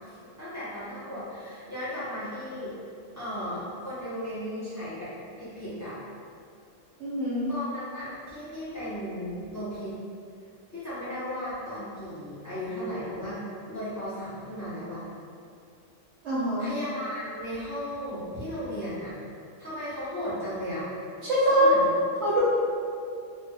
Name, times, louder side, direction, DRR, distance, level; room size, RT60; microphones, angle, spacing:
voice 1, 0.0-2.7 3.1-5.1 5.4-6.0 7.5-10.0 10.7-13.4 13.7-15.0 16.6-19.1 19.6-20.9 21.4-21.9, equal, 15° left, -13 dB, 0.9 m, -35 dB
voice 2, 7.0-7.5 16.2-16.7 21.2-21.7 22.2-22.4, right 1 dB, 65° right, -9 dB, 0.8 m, -23 dB
2.2 x 2.0 x 3.2 m, 2.4 s
omnidirectional pair, 1.4 m